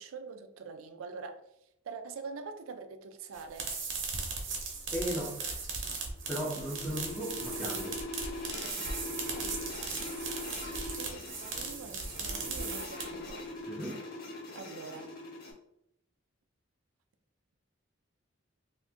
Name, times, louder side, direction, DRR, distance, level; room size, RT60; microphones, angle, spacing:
voice 1, 0.0-3.7 9.3-10.0 10.7-13.5 14.5-15.2, right 4 dB, 85° right, 0.4 m, -45 dB
sound 1, 3.3-13.3, right 4 dB, 60° right, 0.8 m, -37 dB
voice 2, 4.9-5.6 6.3-8.0 13.7-14.0, equal, ahead, 0.6 m, -36 dB
sound 2, 6.1-15.5, left 2 dB, 45° left, 0.8 m, -42 dB
2.7 x 2.5 x 3.4 m
head